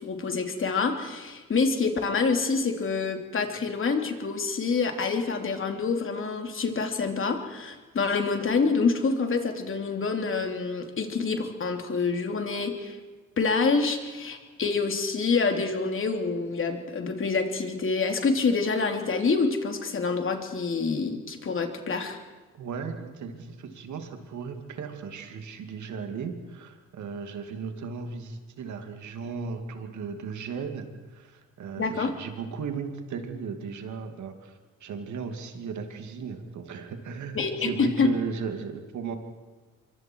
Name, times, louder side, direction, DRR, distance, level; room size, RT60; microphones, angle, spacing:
voice 1, 0.0-13.0 13.4-22.2 31.8-32.1 37.3-38.1, left 4 dB, 45° left, 4 dB, 3.1 m, -27 dB
voice 2, 22.5-39.2, right 5 dB, 70° right, 5 dB, 2.7 m, -36 dB
25.5 x 23.5 x 4.7 m, 1.3 s
cardioid pair, 90°, 30 cm